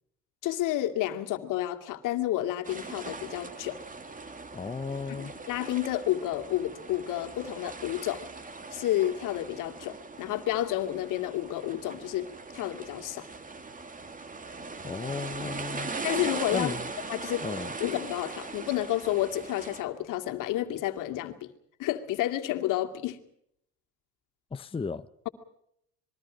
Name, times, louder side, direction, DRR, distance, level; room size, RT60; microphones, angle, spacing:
voice 1, 0.4-3.8 5.1-8.3 8.7-13.3 15.4-15.5 16.0-16.7 17.1-17.4 17.8-21.5 21.8-23.2, left 13 dB, 65° left, 2.4 m, -30 dB
sound 1, 2.6-19.8, right 3 dB, 25° right, 2.7 m, -40 dB
voice 2, 4.5-5.3 14.8-15.9 16.5-16.8 17.4-17.7 24.5-25.1, left 5 dB, 15° left, 0.8 m, -34 dB
26.5 x 22.0 x 5.2 m
supercardioid pair, 90°, 34 cm